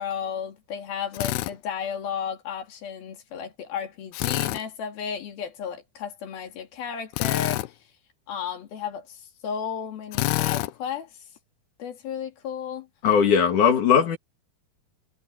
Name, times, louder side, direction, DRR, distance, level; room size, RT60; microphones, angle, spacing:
voice 1, 0.0-7.6 8.3-11.1 11.8-12.9, left 7 dB, 70° left, 4.4 m, -33 dB
Drill, 1.1-1.5 4.1-4.6 7.1-7.7 10.1-10.7, left 18 dB, 90° left, 2.8 m, -26 dB
voice 2, 13.0-14.2, left 7 dB, 55° left, 3.5 m, -19 dB
omnidirectional pair, 4.5 m